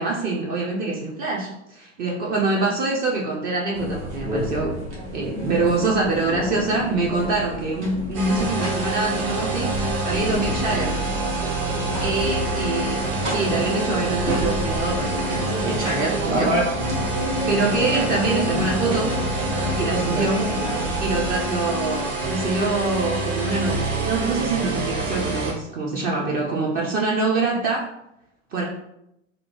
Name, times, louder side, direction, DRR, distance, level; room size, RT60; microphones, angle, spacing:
voice 1, 0.0-4.8 5.1-9.7 10.0-11.0 12.0-16.9 17.5-19.1 19.8-20.5 21.0-27.9 28.5-28.6, right 3 dB, 25° right, -2 dB, 0.4 m, -25 dB
sound 1, 3.7-20.9, equal, 65° right, 1.1 m, -30 dB
sound 2, 8.1-25.5, right 2 dB, 45° right, 0.9 m, -26 dB
2.8 x 2.1 x 2.8 m, 0.81 s
figure-of-eight pair, 80°, 37 cm